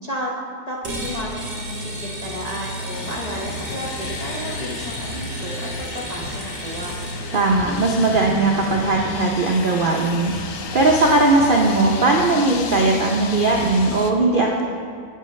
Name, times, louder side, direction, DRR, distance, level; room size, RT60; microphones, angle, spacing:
voice 1, 0.0-0.3 0.7-7.0, equal, 35° left, -4 dB, 0.6 m, -32 dB
sound 1, 0.8-7.4, right 1 dB, 40° right, 1.9 m, -34 dB
sound 2, 1.0-5.9 6.2-13.7, right 2 dB, 90° right, 1.3 m, -36 dB
sound 3, 2.9-14.1, left 5 dB, 60° left, 0.9 m, -33 dB
voice 2, 7.3-10.3 10.7-14.6, right 2 dB, 60° right, -1 dB, 0.5 m, -18 dB
11.5 x 8.4 x 3.1 m, 2.1 s
omnidirectional pair, 1.8 m